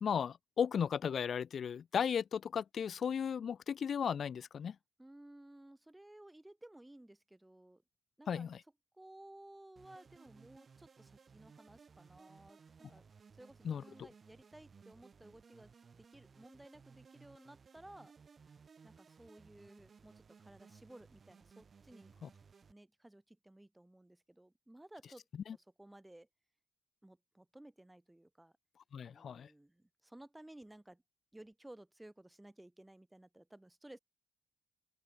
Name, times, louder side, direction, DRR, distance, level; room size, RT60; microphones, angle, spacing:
voice 1, 0.0-4.8 8.3-8.6 13.6-14.1 22.2-22.3 25.5-25.6 28.9-29.5, left 7 dB, 55° left, 0.4 m, -35 dB
voice 2, 5.0-7.8 8.2-8.5 8.9-13.0 13.3-15.7 16.0-18.1 18.8-22.1 22.7-25.3 25.5-26.3 27.0-28.5 29.0-31.0 31.3-34.0, right 1 dB, 10° right, 5.3 m, -57 dB
sound 1, 9.8-22.7, right 5 dB, 40° right, 3.4 m, -61 dB
open air
cardioid pair, 90°, 0 cm